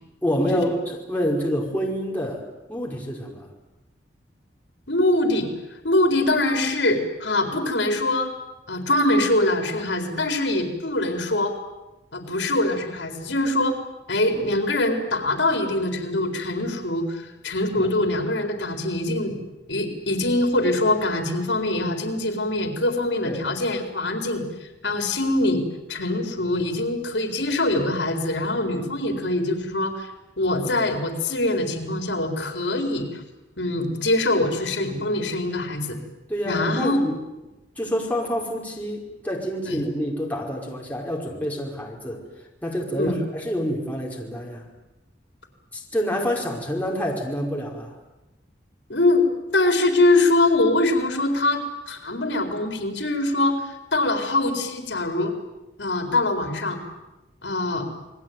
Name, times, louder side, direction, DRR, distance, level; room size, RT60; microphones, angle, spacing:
voice 1, 0.2-2.4 2.7-3.5 17.8-17.9 23.2-23.4 36.3-37.2 37.8-42.2 42.6-44.7 45.7-47.9, equal, 10° left, -2 dB, 5.4 m, -27 dB
voice 2, 4.9-5.5 5.8-8.3 8.7-11.5 12.1-13.8 14.1-19.4 19.7-25.6 25.9-30.1 30.4-33.2 33.6-36.0 36.4-37.0 39.6-39.8 42.9-43.2 48.9-49.2 49.5-55.3 55.8-56.8 57.4-57.9, left 2 dB, 80° left, 5 dB, 4.2 m, -23 dB
28.5 x 21.0 x 9.5 m, 1.0 s
head